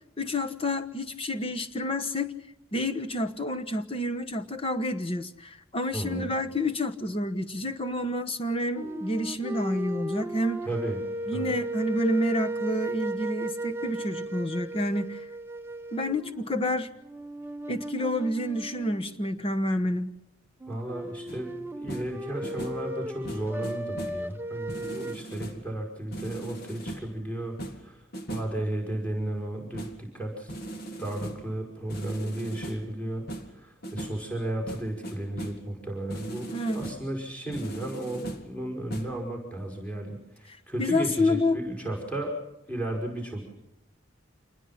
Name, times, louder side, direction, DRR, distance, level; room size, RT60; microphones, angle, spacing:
voice 1, 0.2-2.3 2.7-10.6 11.3-15.3 15.9-16.9 17.7-20.1 36.5-36.8 40.8-41.6, left 1 dB, 30° left, 7 dB, 1.2 m, -29 dB
voice 2, 5.9-6.3 10.6-11.0 11.3-11.6 20.7-30.6 31.0-42.4 42.7-43.5, right 1 dB, 5° left, 0 dB, 5.7 m, -34 dB
sound 1, 8.8-16.7 17.0-19.2 20.6-25.2, right 1 dB, 10° right, 0.9 m, -36 dB
sound 2, 21.3-21.5 21.9-22.2 22.4-22.9 23.2-24.3 24.7-25.7 26.1-27.1 27.6-28.6 29.7-30.1 30.5-31.5 31.9-32.9 33.3-34.3 34.7-35.7 36.1-37.1 37.5-38.6 38.9-39.1, right 1 dB, 50° left, 2.2 m, -39 dB
27.5 x 21.0 x 5.8 m, 0.85 s
head